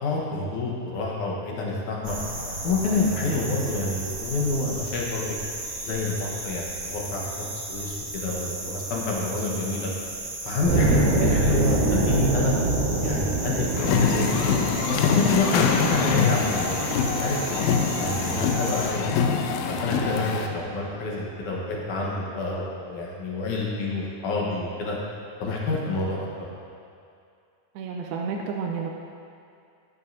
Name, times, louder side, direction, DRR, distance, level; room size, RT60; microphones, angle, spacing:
voice 1, 0.0-2.2 2.6-5.4 5.8-9.9 10.5-12.6 13.0-14.4 14.9-17.4 18.0-19.3 19.7-25.0 25.4-26.5, left 3 dB, 65° left, -3 dB, 2.3 m, -28 dB
sound 1, 2.0-18.9, right 2 dB, 35° right, 1.7 m, -35 dB
sound 2, 10.6-21.4, right 2 dB, 65° right, 3.2 m, -27 dB
voice 2, 11.0-11.3 15.7-15.8 18.0-18.1 27.8-28.9, right 6 dB, 80° right, 1 dB, 2.4 m, -32 dB
sound 3, 13.8-20.5, left 6 dB, 80° left, 2.4 m, -25 dB
12.5 x 10.0 x 2.7 m, 2.4 s
omnidirectional pair, 4.5 m